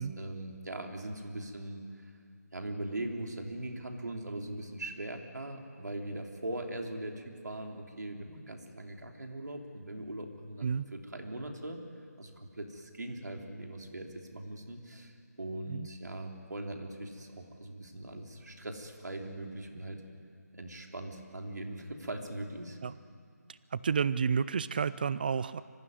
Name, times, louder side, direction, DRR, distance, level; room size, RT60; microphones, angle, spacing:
voice 1, 0.0-2.2 2.5-11.8 12.2-20.0 20.5-22.8, right 1 dB, 85° right, 2 dB, 3.3 m, -41 dB
voice 2, 23.5-25.6, right 6 dB, 30° right, 17 dB, 0.6 m, -31 dB
24.0 x 16.0 x 9.6 m, 2.3 s
figure-of-eight pair, 165°, 9 cm